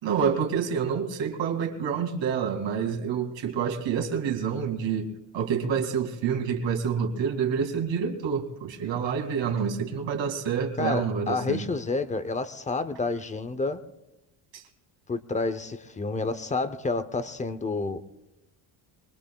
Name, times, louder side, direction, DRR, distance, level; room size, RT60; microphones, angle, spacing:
voice 1, 0.0-5.1 5.3-11.7 14.5-14.6, right 7 dB, 65° right, 4 dB, 2.3 m, -28 dB
voice 2, 10.8-13.8 15.1-18.0, left 3 dB, 15° left, 12 dB, 0.6 m, -29 dB
23.5 x 20.5 x 2.3 m, 0.99 s
cardioid pair, 130°, 48 cm